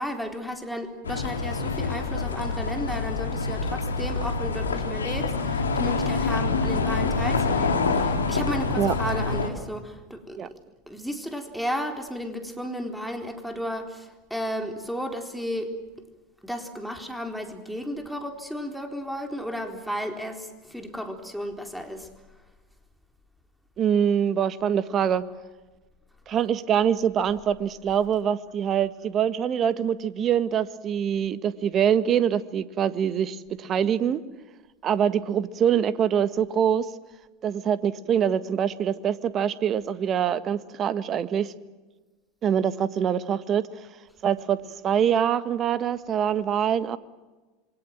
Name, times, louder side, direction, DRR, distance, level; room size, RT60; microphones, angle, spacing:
voice 1, 0.0-10.6 10.9-15.8 16.4-22.1, equal, ahead, 4 dB, 4.1 m, -33 dB
sound 1, 1.0-9.5, left 4 dB, 85° left, 3.0 m, -26 dB
voice 2, 23.8-25.2 26.3-34.2 34.8-36.9 37.4-41.5 42.4-43.9 44.2-47.0, right 8 dB, 35° right, 13 dB, 1.6 m, -24 dB
27.5 x 24.0 x 7.6 m, 1.2 s
hypercardioid pair, 85°, 0 cm